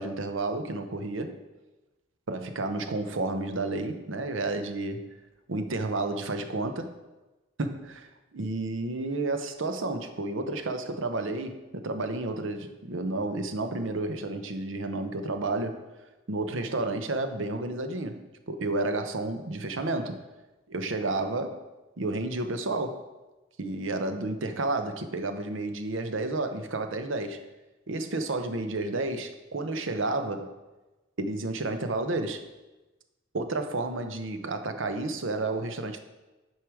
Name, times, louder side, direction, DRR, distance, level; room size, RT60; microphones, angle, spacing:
voice 1, 0.0-1.4 2.3-5.1 5.5-6.9 7.6-15.8 16.3-20.2 20.7-21.6 22.0-23.0 23.6-27.4 27.9-30.5 31.2-32.4 33.3-36.0, right 2 dB, 75° right, 7 dB, 0.8 m, -31 dB
9.2 x 4.9 x 4.7 m, 1.1 s
head